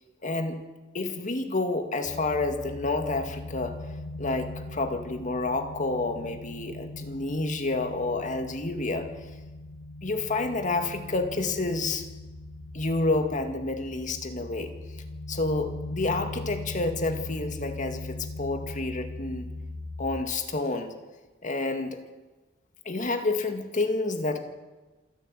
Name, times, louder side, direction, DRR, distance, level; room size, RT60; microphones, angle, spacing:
voice 1, 0.2-0.6 0.9-3.8 4.2-9.1 10.0-12.0 12.7-14.7 15.3-19.5 20.0-20.9 21.4-22.0 22.9-24.4, left 2 dB, 40° left, 6 dB, 2.1 m, -29 dB
sound 1, 2.0-20.2, left 2 dB, 80° left, 1.9 m, -40 dB
27.0 x 11.5 x 9.2 m, 1.2 s
head